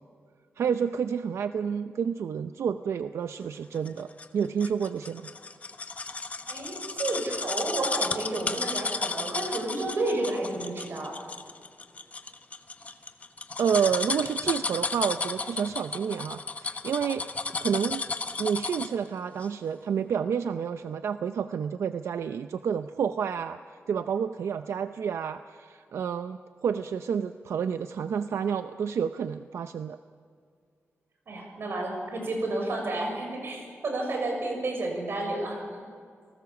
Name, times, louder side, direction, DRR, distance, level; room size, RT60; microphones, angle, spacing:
voice 1, 0.6-5.3 13.6-17.2 17.6-18.0 18.4-30.0, right 7 dB, 90° right, 10 dB, 0.6 m, -29 dB
sound 1, 3.9-19.0 19.4-19.5, left 3 dB, 30° left, 1.1 m, -33 dB
voice 2, 6.5-11.2 31.3-35.8, right 2 dB, 60° right, 2 dB, 6.4 m, -31 dB
29.5 x 18.5 x 7.1 m, 2.2 s
wide cardioid pair, 140°, 5 cm